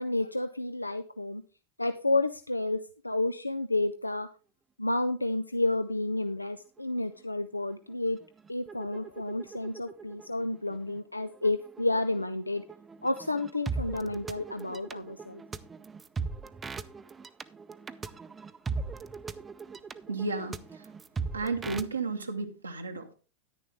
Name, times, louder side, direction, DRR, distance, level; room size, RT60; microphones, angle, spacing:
voice 1, 0.0-1.4 1.8-2.8 3.0-4.3 4.8-8.2 8.5-12.6 13.0-15.4, left 2 dB, 85° left, 10 dB, 0.4 m, -30 dB
sound 1, 6.4-6.5 6.8-7.2 7.6-21.9, right 4 dB, 15° right, 0.5 m, -40 dB
voice 2, 20.1-20.8 21.3-23.1, right 3 dB, 80° right, 4 dB, 0.9 m, -33 dB
10.0 x 9.9 x 3.4 m, 0.35 s
figure-of-eight pair, 90°, 0 cm